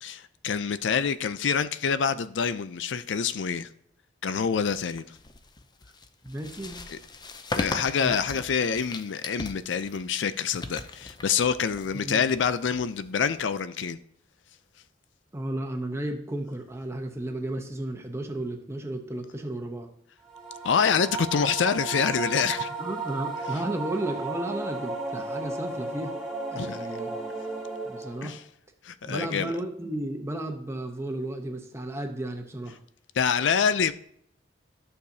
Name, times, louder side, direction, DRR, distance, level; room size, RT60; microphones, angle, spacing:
voice 1, 0.0-3.7 4.2-5.1 6.9-7.0 7.6-14.0 20.6-22.7 26.6-26.9 28.2-28.4 28.8-29.5 33.1-33.9, left 6 dB, 80° left, 0.5 m, -26 dB
sound 1, 4.8-13.4, left 2 dB, 25° left, 0.5 m, -39 dB
voice 2, 6.2-6.8 8.0-8.2 11.9-12.2 15.3-19.9 22.8-26.1 26.5-27.1 27.9-28.4 29.0-32.8, right 1 dB, 15° right, 0.8 m, -33 dB
sound 2, 20.3-28.4, right 3 dB, ahead, 1.6 m, -34 dB
11.5 x 6.6 x 2.7 m
head